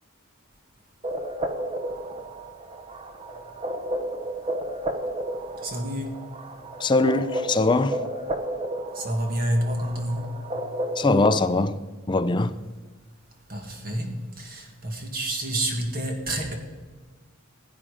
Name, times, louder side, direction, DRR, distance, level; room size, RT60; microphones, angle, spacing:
sound 1, 1.0-11.4, right 1 dB, 25° right, 0.9 m, -32 dB
voice 1, 5.6-6.2 8.9-10.3 13.5-16.5, right 1 dB, 45° right, 1.9 m, -28 dB
voice 2, 6.8-7.9 11.0-11.8 12.1-12.6, left 2 dB, 20° left, 0.4 m, -21 dB
16.0 x 8.8 x 5.0 m
head